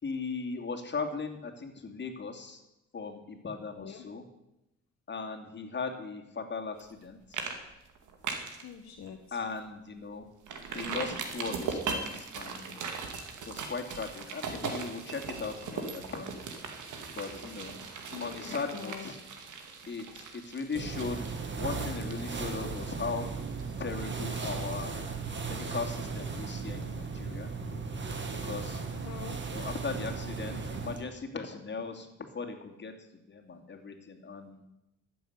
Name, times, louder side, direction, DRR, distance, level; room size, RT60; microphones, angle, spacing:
voice 1, 0.0-2.6 2.9-4.2 5.1-7.4 9.3-10.3 10.7-12.9 13.5-16.3 17.1-17.7 18.2-19.2 19.9-21.3 21.6-23.3 23.8-25.0 25.4-27.5 28.4-28.8 29.4-32.1 32.3-32.9 33.3-34.6, left 4 dB, 35° left, 3 dB, 2.7 m, -38 dB
sound 1, 6.8-7.0 7.3-7.6 7.9-8.6 9.1-9.2 9.6-9.7 10.5-24.0 24.3-24.4, right 5 dB, 75° right, 2.4 m, -39 dB
voice 2, 8.6-9.4 18.1-19.1 29.0-29.4, left 7 dB, 60° left, 3 dB, 1.5 m, -44 dB
sound 2, 20.8-31.1, right 4 dB, 40° right, 2.1 m, -36 dB
13.0 x 7.9 x 9.4 m, 0.88 s
cardioid pair, 90°, 30 cm